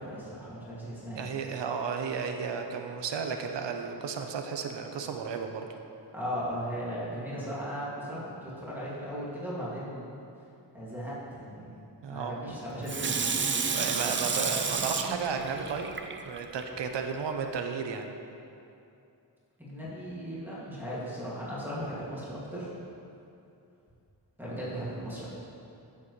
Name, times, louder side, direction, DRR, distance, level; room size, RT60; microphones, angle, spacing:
voice 1, 0.0-1.3 6.1-10.1 10.7-13.4 19.6-22.7 24.4-25.3, equal, 5° right, -9 dB, 2.2 m, -37 dB
voice 2, 1.2-5.7 12.0-12.3 13.7-15.9 16.3-18.1, right 6 dB, 80° right, 4 dB, 0.8 m, -33 dB
Water tap faucet / Sink (filling or washing), 12.9-16.6 17.1-17.2, right 5 dB, 30° right, 0.5 m, -31 dB
14.5 x 7.6 x 3.2 m, 2.7 s
wide cardioid pair, 150°, 42 cm